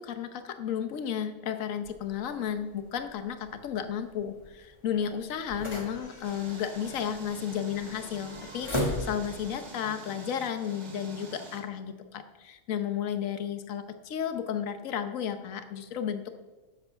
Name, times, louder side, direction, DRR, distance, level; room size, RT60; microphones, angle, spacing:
voice 1, 0.0-16.4, left 8 dB, 60° left, 8 dB, 1.3 m, -33 dB
sound 1, 1.8-9.6, left 1 dB, 20° left, 1.6 m, -39 dB
sound 2, 6.2-11.6, right 3 dB, 80° right, 2.4 m, -47 dB
12.5 x 7.9 x 5.9 m, 1.2 s
omnidirectional pair, 1.6 m